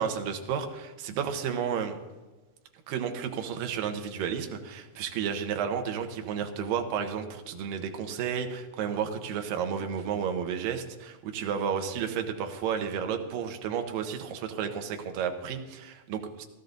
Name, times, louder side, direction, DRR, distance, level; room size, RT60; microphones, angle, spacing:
voice 1, 0.0-2.0 2.9-16.5, right 7 dB, 70° right, 5 dB, 2.7 m, -32 dB
16.5 x 13.0 x 4.0 m, 1.2 s
omnidirectional pair, 4.4 m